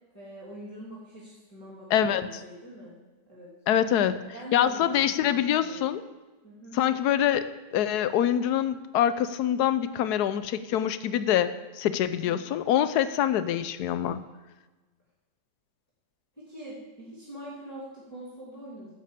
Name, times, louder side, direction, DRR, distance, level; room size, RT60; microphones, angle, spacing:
voice 1, 0.1-3.0 3.3-3.5 4.3-5.8 6.4-6.8 12.2-12.4 16.4-18.9, equal, 10° left, -9 dB, 2.7 m, -44 dB
voice 2, 1.9-2.3 3.7-4.2 4.5-6.0 6.7-7.5 7.7-14.2, left 10 dB, 70° left, 13 dB, 1.1 m, -25 dB
11.0 x 6.8 x 7.4 m, 1.2 s
omnidirectional pair, 1.9 m